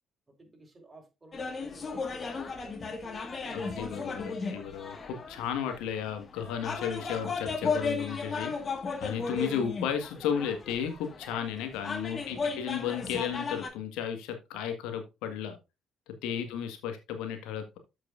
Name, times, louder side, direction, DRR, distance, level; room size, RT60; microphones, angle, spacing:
voice 1, 0.3-3.6 12.2-12.7 16.2-16.6, right 2 dB, 30° right, 1 dB, 4.4 m, -53 dB
sound 1, 1.3-13.7, left 4 dB, 40° left, 1.8 m, -35 dB
voice 2, 3.5-8.5 9.0-15.6 16.2-17.8, left 8 dB, 70° left, 6 dB, 1.7 m, -34 dB
13.0 x 5.9 x 2.6 m, 0.26 s
hypercardioid pair, 45°, 0 cm